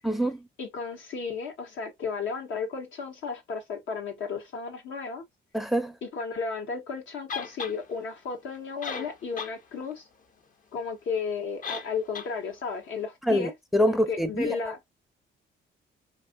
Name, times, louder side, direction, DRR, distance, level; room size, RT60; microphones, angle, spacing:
voice 1, 0.0-0.4 5.5-5.9 13.3-14.6, equal, ahead, 0.5 m, -25 dB
voice 2, 0.6-5.2 6.0-10.1 10.7-13.5 13.9-14.8, left 5 dB, 75° left, 1.4 m, -34 dB
sound 1, 7.3-7.8 8.5-8.6 8.8-9.6 9.9-10.0 11.6-11.9 12.1-12.3, left 6 dB, 40° left, 0.7 m, -35 dB
4.5 x 2.7 x 2.2 m
cardioid pair, 90°, 20 cm